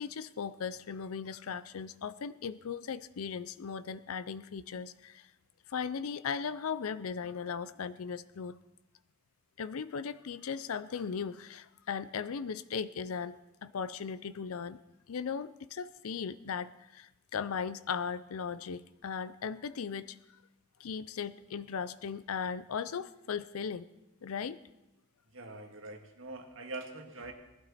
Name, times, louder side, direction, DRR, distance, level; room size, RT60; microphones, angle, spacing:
voice 1, 0.0-5.3 5.7-8.6 9.6-13.4 13.6-14.8 15.1-20.2 20.8-23.9 24.2-24.6, left 6 dB, 85° left, 13 dB, 0.5 m, -37 dB
voice 2, 25.3-27.3, right 2 dB, 65° right, 3 dB, 1.8 m, -43 dB
19.0 x 12.0 x 4.2 m, 0.94 s
head